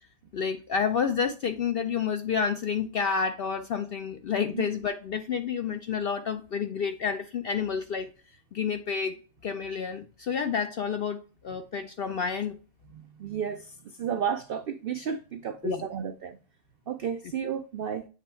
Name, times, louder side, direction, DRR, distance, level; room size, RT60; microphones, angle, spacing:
voice 1, 0.3-8.1 8.5-9.2 9.4-12.6 15.6-15.8, left 6 dB, 65° left, 0.5 m, -29 dB
voice 2, 12.9-16.4 16.9-18.1, right 7 dB, 75° right, 0.5 m, -32 dB
7.6 x 3.4 x 4.3 m
omnidirectional pair, 1.5 m